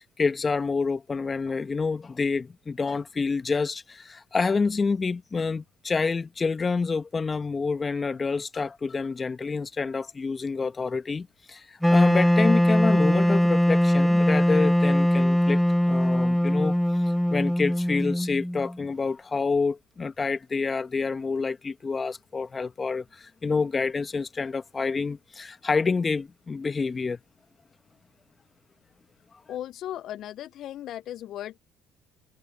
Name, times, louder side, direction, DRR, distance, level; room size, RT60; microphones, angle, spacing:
voice 1, 0.0-15.6 15.9-16.7 17.3-27.2, left 4 dB, 30° left, 1.3 m, -28 dB
Wind instrument woodwind instrument, 11.8-18.8, equal, 5° left, 0.4 m, -21 dB
voice 2, 29.5-31.6, left 12 dB, 65° left, 0.6 m, -36 dB
supercardioid pair, 75°, 0 cm